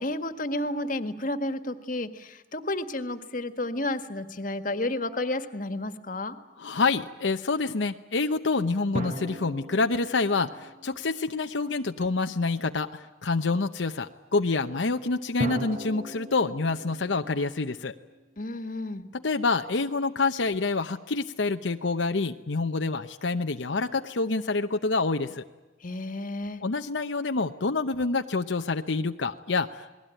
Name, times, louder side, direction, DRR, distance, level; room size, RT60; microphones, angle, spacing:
voice 1, 0.0-6.4 18.4-19.1 25.8-26.6, left 1 dB, 45° left, 10 dB, 1.7 m, -31 dB
voice 2, 6.6-17.9 19.1-25.4 26.6-29.9, left 3 dB, 85° left, 6 dB, 0.9 m, -27 dB
sound 1, 8.9-11.8 15.4-18.8, right 1 dB, 40° right, 1.6 m, -38 dB
29.0 x 20.5 x 9.1 m, 1.2 s
head